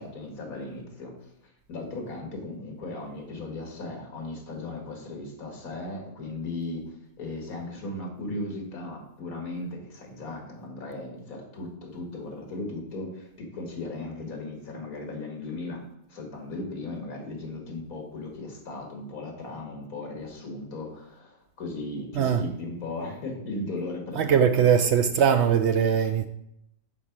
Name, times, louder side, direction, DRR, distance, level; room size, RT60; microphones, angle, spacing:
voice 1, 0.0-15.8 16.1-24.4, left 2 dB, 80° left, 2.2 m, -37 dB
voice 2, 24.2-26.3, right 8 dB, 65° right, 0.7 m, -21 dB
8.7 x 3.9 x 5.9 m
omnidirectional pair, 1.5 m